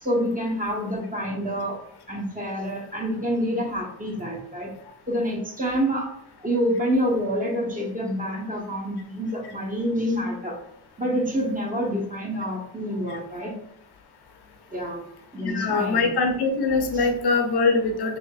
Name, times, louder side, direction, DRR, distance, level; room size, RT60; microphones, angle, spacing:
voice 1, 0.0-1.8 2.1-4.7 5.1-6.1 6.4-10.6 11.0-13.6 14.7-15.0 15.3-16.1 16.9-17.0, equal, 20° right, -1 dB, 1.4 m, -27 dB
voice 2, 15.4-18.2, left 3 dB, 55° left, 4 dB, 0.9 m, -22 dB
5.0 x 2.9 x 2.5 m, 0.72 s
supercardioid pair, 55°, 45 cm